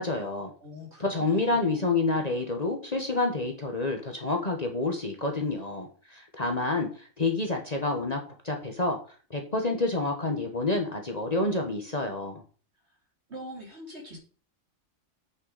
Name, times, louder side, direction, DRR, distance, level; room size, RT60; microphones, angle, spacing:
voice 1, 0.0-0.5 1.0-9.0 9.3-12.4, left 2 dB, 30° left, 3 dB, 1.2 m, -28 dB
voice 2, 0.6-1.8 13.3-14.2, equal, 55° right, -1 dB, 3.3 m, -43 dB
8.4 x 6.6 x 4.1 m, 0.39 s
omnidirectional pair, 1.4 m